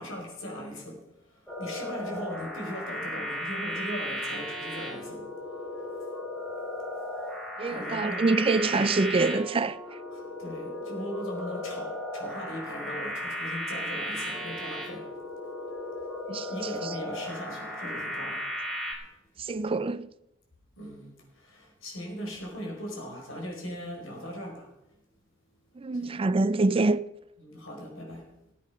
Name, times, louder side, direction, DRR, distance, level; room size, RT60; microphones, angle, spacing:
voice 1, 0.0-5.3 7.7-8.3 8.8-8.9 10.1-15.1 16.5-18.5 20.8-24.7 25.9-26.2 27.4-28.3, equal, 75° left, 4.8 m, -39 dB
sound 1, 1.5-18.9, left 1 dB, ahead, 4.2 m, -36 dB
voice 2, 7.6-10.0 16.3-17.0 19.4-20.1 25.8-27.0, right 3 dB, 25° right, 0.4 m, -26 dB
19.0 x 8.4 x 5.5 m
head